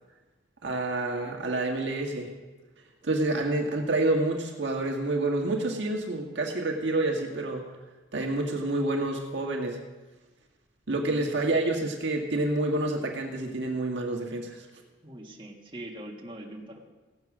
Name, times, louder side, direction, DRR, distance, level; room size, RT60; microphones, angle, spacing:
voice 1, 0.6-2.3 3.0-7.6 8.1-9.8 10.9-14.6, right 2 dB, 65° right, 1 dB, 1.7 m, -28 dB
voice 2, 15.0-16.9, right 1 dB, 25° right, -1 dB, 1.7 m, -42 dB
16.5 x 7.7 x 6.1 m, 1.2 s
head